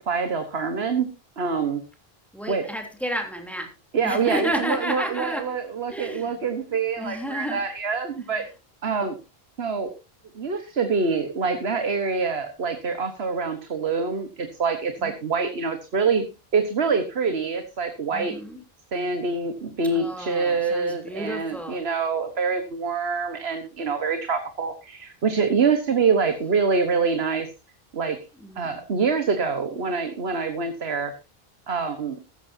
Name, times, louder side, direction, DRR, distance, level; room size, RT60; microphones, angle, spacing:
voice 1, 0.1-1.1 1.4-1.8 2.5-2.6 3.9-8.4 8.8-9.2 9.6-9.9 10.3-16.2 16.5-18.3 18.9-27.5 27.9-28.2 28.6-31.1 31.7-32.1, right 5 dB, 80° right, 7 dB, 1.6 m, -25 dB
voice 2, 2.3-3.7 4.0-5.6 5.9-6.4 7.0-7.6 8.2-8.5 15.0-15.1 18.1-18.6 19.9-21.8 28.3-28.8, equal, ahead, 3 dB, 3.1 m, -32 dB
15.5 x 13.0 x 2.8 m, 0.28 s
omnidirectional pair, 1.0 m